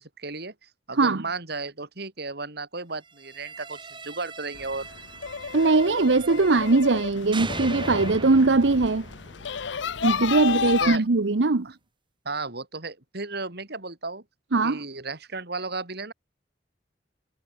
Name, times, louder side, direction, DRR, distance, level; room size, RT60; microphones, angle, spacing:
voice 1, 0.0-4.9 10.4-11.0 11.6-11.7 12.2-14.2 14.6-16.1, right 3 dB, 65° right, 4.0 m, -34 dB
sound 1, 3.2-7.0 7.3-10.3, right 3 dB, 30° right, 4.3 m, -39 dB
sound 2, 4.5-11.0, left 6 dB, 85° left, 0.8 m, -32 dB
voice 2, 5.5-9.1 10.0-11.7 14.5-14.8, right 3 dB, 90° right, 0.9 m, -21 dB
head